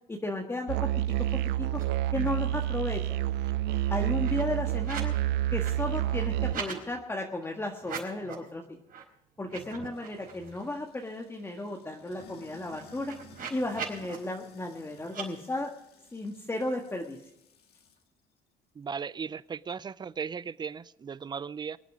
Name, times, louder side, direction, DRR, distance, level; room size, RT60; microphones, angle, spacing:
voice 1, 0.1-0.8 1.3-1.8 2.1-3.0 3.9-5.1 5.5-8.8 9.4-13.1 13.5-15.7 16.1-17.2, left 2 dB, 15° left, 1.5 m, -34 dB
Musical instrument, 0.7-6.5, right 14 dB, 85° right, 0.5 m, -29 dB
sound 1, 1.7-2.8 3.1-5.2 5.5-6.8 7.7-8.5 8.9-9.0 9.4-10.7 11.1-11.2 11.5-14.2 15.1-15.3, right 6 dB, 55° right, 4.6 m, -42 dB
Sink (filling or washing), 9.9-18.1, left 5 dB, 70° left, 2.5 m, -56 dB
voice 2, 18.7-21.8, right 6 dB, 25° right, 0.5 m, -37 dB
24.0 x 9.2 x 4.9 m
cardioid pair, 110°, 17 cm